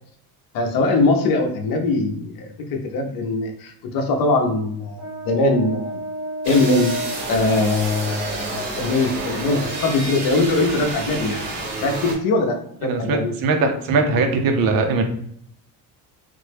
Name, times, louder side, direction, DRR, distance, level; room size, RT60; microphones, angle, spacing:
voice 1, 0.5-6.0 6.4-6.9 7.3-11.4 11.8-13.3, left 2 dB, 60° left, 4 dB, 0.7 m, -21 dB
Brass instrument, 5.0-11.7, right 1 dB, 10° right, 0.3 m, -34 dB
sound 1, 6.4-12.1, right 3 dB, 80° right, 1.2 m, -30 dB
voice 2, 12.8-15.0, right 3 dB, 60° right, 5 dB, 0.6 m, -20 dB
3.3 x 2.1 x 3.3 m, 0.67 s
cardioid pair, 155°, 40 cm